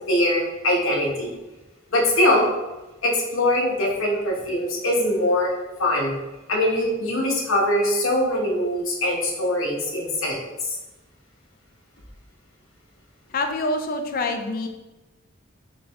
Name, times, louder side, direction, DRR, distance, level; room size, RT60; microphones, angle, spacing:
voice 1, 0.0-1.3 1.9-2.5 3.0-5.5 5.8-6.1 6.5-10.4, left 1 dB, 90° left, -1 dB, 1.0 m, -22 dB
voice 2, 13.3-14.7, left 2 dB, 45° left, 5 dB, 0.5 m, -26 dB
3.9 x 3.0 x 3.4 m, 1.1 s
head